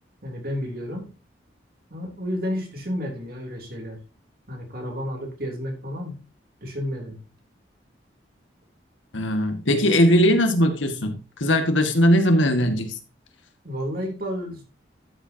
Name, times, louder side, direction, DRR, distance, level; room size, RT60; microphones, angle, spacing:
voice 1, 0.2-1.1 1.9-4.0 4.5-6.3 6.6-7.2 13.6-14.6, equal, 50° right, 1 dB, 3.3 m, -31 dB
voice 2, 9.1-13.0, equal, 90° left, 6 dB, 1.9 m, -20 dB
13.0 x 7.8 x 2.9 m, 0.32 s
head